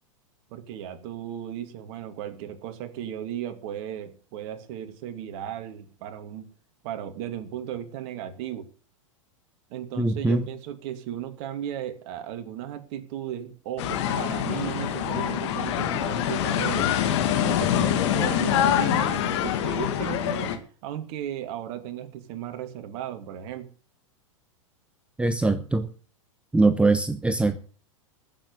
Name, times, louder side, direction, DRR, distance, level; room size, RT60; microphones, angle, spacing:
voice 1, 0.5-6.5 6.8-8.7 9.7-17.0 17.4-20.6 20.8-23.7, right 10 dB, 50° right, 8 dB, 2.5 m, -35 dB
voice 2, 10.0-10.4 25.2-25.9 26.5-27.6, right 3 dB, 5° right, 10 dB, 1.0 m, -22 dB
sound 1, 13.8-20.6, left 10 dB, 60° left, 2.2 m, -25 dB
15.0 x 7.4 x 8.1 m, 0.41 s
hypercardioid pair, 100°, 17 cm